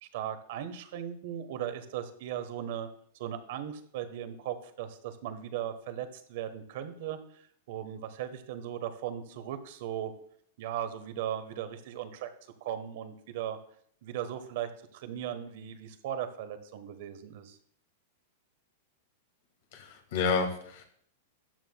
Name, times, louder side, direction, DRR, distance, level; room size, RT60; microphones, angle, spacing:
voice 1, 0.0-2.9 3.1-10.1 10.6-12.3 12.6-13.6 14.0-17.6, right 10 dB, 60° right, 10 dB, 1.2 m, -37 dB
voice 2, 19.7-20.8, left 5 dB, 70° left, 4 dB, 1.7 m, -30 dB
13.5 x 9.0 x 2.3 m, 0.62 s
supercardioid pair, 140°, 0 cm